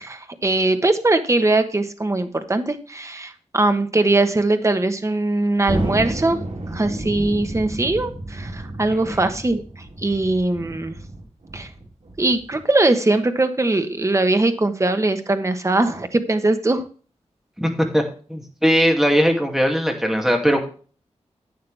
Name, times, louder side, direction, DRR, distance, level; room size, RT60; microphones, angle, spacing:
voice 1, 0.0-6.4 6.7-9.6 10.0-11.0 11.5-11.7 12.2-16.8, right 2 dB, 25° right, 8 dB, 1.2 m, -21 dB
Thunder, 5.7-12.5, right 1 dB, 80° right, 3.5 m, -30 dB
voice 2, 8.9-9.3 17.6-18.0 18.3-20.7, equal, 5° right, 3 dB, 2.4 m, -20 dB
11.5 x 8.7 x 3.4 m, 0.39 s
wide cardioid pair, 105°, 12 cm